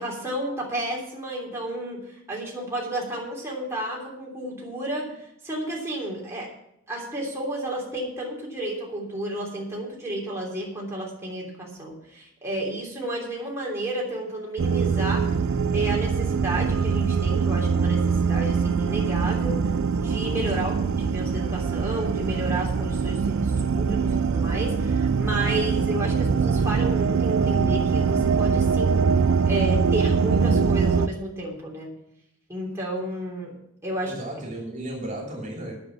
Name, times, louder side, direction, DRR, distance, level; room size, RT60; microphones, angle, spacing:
voice 1, 0.0-6.5 6.9-15.2 15.7-19.6 20.0-29.0 29.4-31.9 32.5-34.1, right 1 dB, 15° right, -4 dB, 3.1 m, -32 dB
sound 1, 14.6-31.1, right 5 dB, 85° right, 0.5 m, -23 dB
voice 2, 20.4-20.9 34.0-35.7, right 1 dB, 40° right, -1 dB, 3.0 m, -35 dB
9.7 x 7.2 x 8.5 m, 0.77 s
head